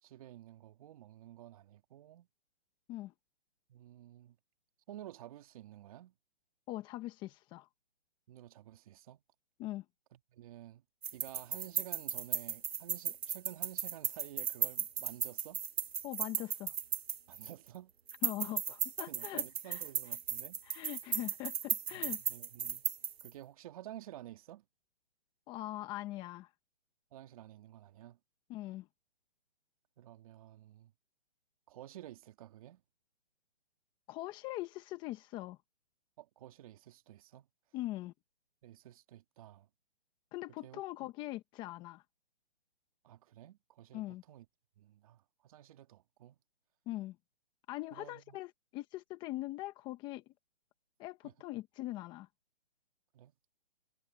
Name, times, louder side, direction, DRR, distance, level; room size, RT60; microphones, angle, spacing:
voice 1, 0.0-2.3 3.7-4.4 4.9-6.1 8.3-9.2 10.1-10.8 11.1-15.6 17.3-17.9 18.5-18.6 19.1-20.6 21.9-22.9 23.2-24.6 27.1-28.2 30.0-30.9 31.7-32.8 36.2-37.5 38.6-39.7 40.6-41.1 43.0-44.5 44.8-46.4 47.9-48.4 51.2-51.3 53.1-53.3, right 13 dB, 35° right, 2.1 m, -52 dB
voice 2, 6.7-7.7 9.6-9.8 16.0-16.7 18.2-19.8 20.6-22.2 25.5-26.5 28.5-28.9 34.1-35.6 37.7-38.1 40.3-42.0 43.9-44.2 46.9-47.2 47.7-50.2 51.0-52.3, left 17 dB, 15° left, 1.2 m, -42 dB
sound 1, 11.0-17.7 18.1-23.3, right 7 dB, 70° right, 1.9 m, -36 dB
hypercardioid pair, 160°, 32 cm